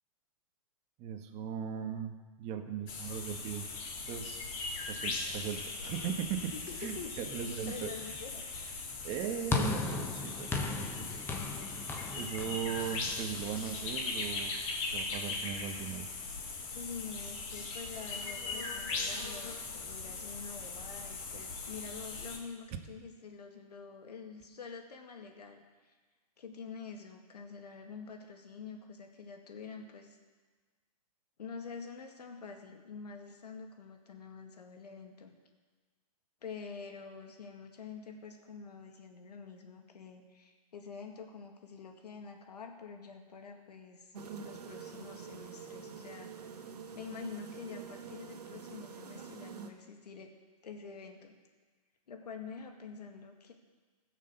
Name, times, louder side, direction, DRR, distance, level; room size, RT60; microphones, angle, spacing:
voice 1, 1.0-3.7 4.1-4.5 4.9-6.5 6.8-8.2 9.0-11.2 12.1-14.5 14.9-16.1, right 8 dB, 35° right, 6 dB, 1.3 m, -38 dB
sound 1, 2.9-22.4, left 3 dB, 55° left, 3.7 m, -39 dB
voice 2, 6.5-8.8 16.7-25.9 26.4-30.2 31.4-35.3 36.4-44.1 44.4-46.3 46.9-50.3 50.6-51.4 52.1-53.5, left 5 dB, 90° left, 3 dB, 2.1 m, -47 dB
sound 2, 9.5-13.9, left 4 dB, 10° left, 1.2 m, -36 dB
sound 3, 44.1-49.7, right 6 dB, 85° right, 1.5 m, -46 dB
17.0 x 6.7 x 6.8 m, 1.4 s
hypercardioid pair, 130°, 20 cm